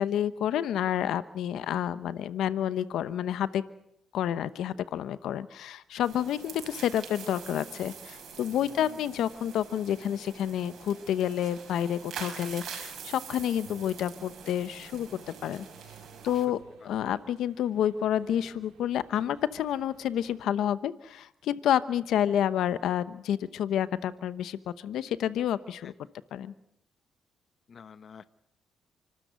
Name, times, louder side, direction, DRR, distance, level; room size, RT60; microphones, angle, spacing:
voice 1, 0.0-3.6 4.1-15.6 16.2-16.6 16.8-25.9 26.3-26.5, left 10 dB, 80° left, 14 dB, 0.9 m, -29 dB
sound 1, 6.0-16.5, right 6 dB, 65° right, 5.6 m, -45 dB
voice 2, 8.5-9.0 16.3-16.4 16.8-16.9 25.8-25.9 27.7-28.2, left 6 dB, 50° left, 13 dB, 0.8 m, -49 dB
sound 2, 13.5-20.4, right 7 dB, 85° right, 2.4 m, -58 dB
29.0 x 13.0 x 8.1 m, 0.81 s
cardioid pair, 90°, 0 cm